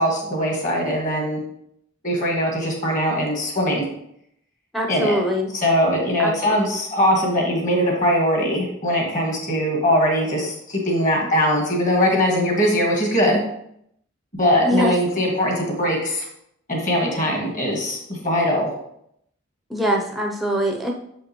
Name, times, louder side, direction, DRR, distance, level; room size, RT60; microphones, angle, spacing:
voice 1, 0.0-1.4 2.0-3.8 4.9-5.2 5.5-13.4 14.3-16.3 16.7-18.7, equal, 40° left, 0 dB, 1.7 m, -21 dB
voice 2, 4.7-5.5 6.2-6.6 14.6-15.2 19.7-20.9, equal, ahead, -1 dB, 0.6 m, -23 dB
7.4 x 5.2 x 3.0 m, 0.74 s
head